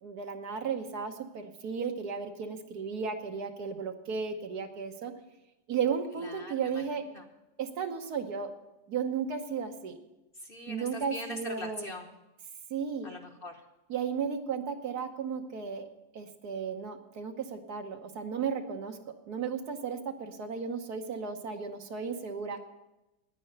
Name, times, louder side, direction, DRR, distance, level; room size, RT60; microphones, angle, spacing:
voice 1, 0.0-5.1 5.7-7.0 7.6-8.5 8.9-10.0 10.7-11.9 12.7-13.1 13.9-15.9 16.1-22.6, right 6 dB, 70° right, 6 dB, 1.5 m, -34 dB
voice 2, 10.5-12.1 13.0-13.5, left 1 dB, 40° left, 4 dB, 1.1 m, -41 dB
10.0 x 9.7 x 8.0 m, 0.96 s
omnidirectional pair, 1.8 m